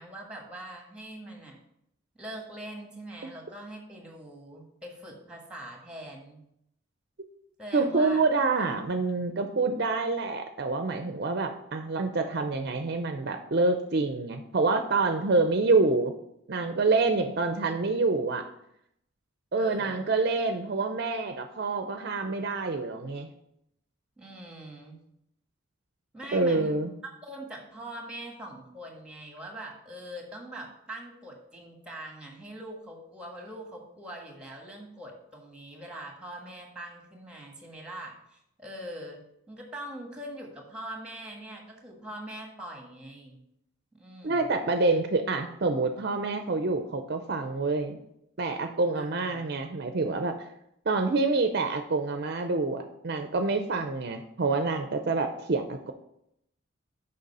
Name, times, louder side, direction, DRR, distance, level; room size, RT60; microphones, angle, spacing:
voice 1, 0.0-1.6 2.1-6.4 7.6-8.3 19.5-20.1 24.2-25.0 26.1-39.2 39.5-43.4 43.9-44.5 48.9-49.6, right 1 dB, 5° right, 1 dB, 1.4 m, -43 dB
voice 2, 7.7-16.1 16.5-18.4 19.5-23.3 26.3-26.9 44.2-48.0 48.4-50.4 50.9-55.9, right 3 dB, 50° right, 7 dB, 0.5 m, -27 dB
6.5 x 5.4 x 5.4 m, 0.77 s
head